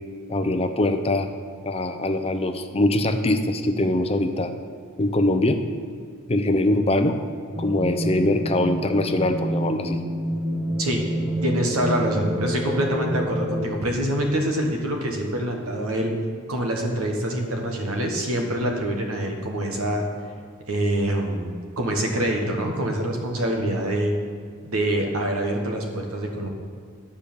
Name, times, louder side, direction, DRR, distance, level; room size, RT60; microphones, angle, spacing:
voice 1, 0.3-1.3 1.6-4.5 5.0-5.6 6.3-7.2 7.6-10.0, left 1 dB, 30° left, 7 dB, 0.6 m, -22 dB
sound 1, 7.5-13.7, equal, 20° right, 0.7 m, -28 dB
voice 2, 11.4-16.1 16.5-20.0 20.7-24.1 24.6-26.5, right 1 dB, 80° right, 1 dB, 1.5 m, -25 dB
9.9 x 5.1 x 6.9 m, 2.1 s
head